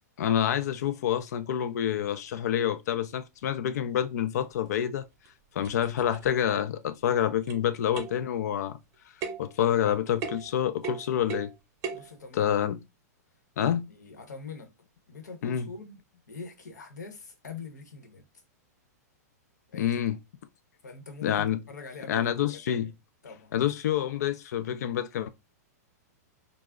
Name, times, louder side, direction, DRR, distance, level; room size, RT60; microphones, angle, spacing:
voice 1, 0.2-5.1 5.6-8.8 9.4-11.5 12.3-12.8 13.6-13.9 15.4-15.7 19.7-20.2 21.2-21.6 22.1-22.9 23.5-25.3, left 10 dB, 70° left, 0.4 m, -27 dB
sound 1, 4.6-4.7 5.3-5.4 5.6-6.5 7.5-7.7 7.9-8.3 9.2-9.5 10.2-10.5 10.8-11.5 11.8-12.1, right 6 dB, 35° right, 0.7 m, -37 dB
voice 2, 11.9-12.6 13.6-14.7 15.1-16.0 16.3-18.2 19.7-20.0 20.8-22.9 23.2-23.5, left 4 dB, 90° left, 0.9 m, -44 dB
2.3 x 2.0 x 3.5 m
hypercardioid pair, 125°, 9 cm